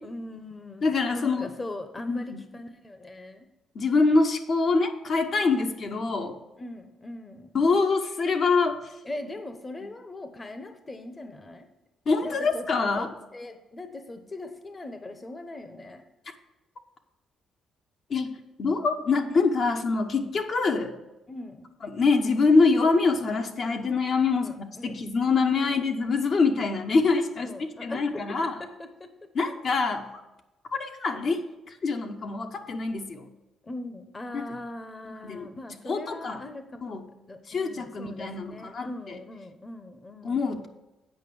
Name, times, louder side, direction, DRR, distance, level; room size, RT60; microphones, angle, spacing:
voice 1, 0.0-3.5 5.8-7.5 9.0-11.7 12.2-12.7 13.0-16.0 19.1-19.4 21.3-21.7 24.3-25.0 25.5-25.8 26.6-26.8 27.4-29.3 33.6-37.0 37.3-40.4, left 2 dB, 25° left, 8 dB, 0.9 m, -40 dB
voice 2, 0.8-1.5 2.1-2.4 3.7-6.4 7.5-8.8 12.1-13.1 18.1-18.3 18.6-20.9 21.8-24.4 24.8-27.5 27.8-28.6 29.3-30.1 30.8-33.3 34.3-34.4 35.2-35.5 35.8-36.4 36.8-37.1 37.5-39.2 40.2-40.7, left 4 dB, 55° left, 4 dB, 1.0 m, -25 dB
8.9 x 5.1 x 7.0 m, 0.99 s
cardioid pair, 90°, 0 cm